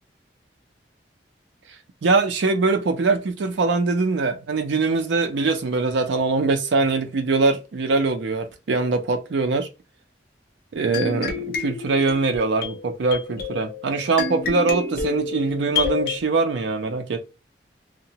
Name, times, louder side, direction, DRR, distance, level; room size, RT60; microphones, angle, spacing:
voice 1, 2.0-9.7 10.7-17.3, right 3 dB, 90° right, 0.4 m, -22 dB
sound 1, 10.9-16.2, left 5 dB, 55° left, 0.5 m, -29 dB
2.7 x 2.1 x 2.7 m
head